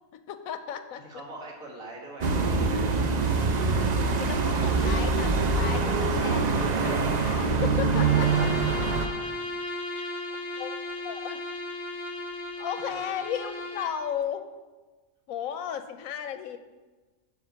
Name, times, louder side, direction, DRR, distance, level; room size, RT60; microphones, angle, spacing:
voice 1, 0.1-1.0 4.2-8.5 9.9-10.1 10.6-10.8 11.0-11.4 12.6-14.5 15.3-16.6, left 9 dB, 85° left, 9 dB, 1.1 m, -35 dB
voice 2, 1.0-3.0 7.9-9.4 12.9-13.1, right 2 dB, 85° right, -2 dB, 2.3 m, -42 dB
sound 1, 2.2-9.1, right 4 dB, 50° right, 0.5 m, -24 dB
Bowed string instrument, 7.9-14.1, left 2 dB, 30° left, 0.9 m, -35 dB
10.5 x 4.9 x 5.7 m, 1.3 s
omnidirectional pair, 1.4 m